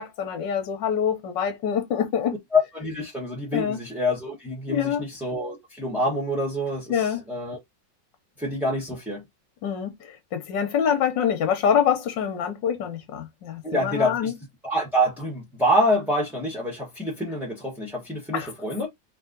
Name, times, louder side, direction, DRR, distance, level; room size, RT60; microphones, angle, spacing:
voice 1, 0.0-2.4 3.5-3.8 4.7-5.0 6.9-7.2 9.6-9.9 10.3-14.3 18.3-18.5, left 8 dB, 85° left, 1.6 m, -25 dB
voice 2, 2.5-7.6 8.4-9.2 13.6-14.3 14.6-18.9, equal, ahead, 1.2 m, -26 dB
3.6 x 3.1 x 3.8 m
omnidirectional pair, 1.9 m